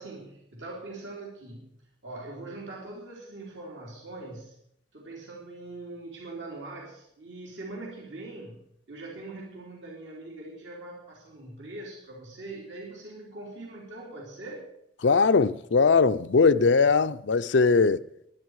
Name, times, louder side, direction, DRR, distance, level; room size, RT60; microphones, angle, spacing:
voice 1, 0.0-1.7 2.0-4.6 4.9-14.7 17.8-17.9, right 2 dB, 90° right, 3.3 m, -42 dB
voice 2, 15.0-18.0, left 4 dB, 75° left, 0.6 m, -20 dB
21.5 x 9.5 x 4.8 m
head